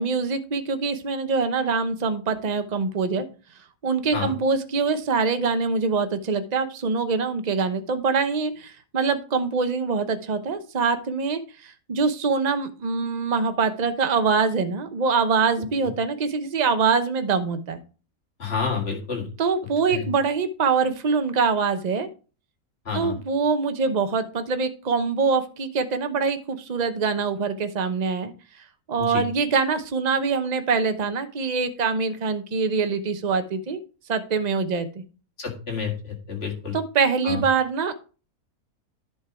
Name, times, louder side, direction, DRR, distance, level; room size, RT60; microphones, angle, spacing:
voice 1, 0.0-3.2 3.8-17.8 19.4-22.1 22.9-28.3 28.9-33.8 34.1-35.0 36.7-37.9, right 5 dB, 35° right, 9 dB, 0.8 m, -24 dB
voice 2, 18.4-19.3 19.9-20.1 22.9-23.2 29.0-29.2 35.4-36.8 37.2-37.4, left 6 dB, 40° left, 0 dB, 2.2 m, -29 dB
11.0 x 4.6 x 4.8 m, 0.36 s
omnidirectional pair, 1.6 m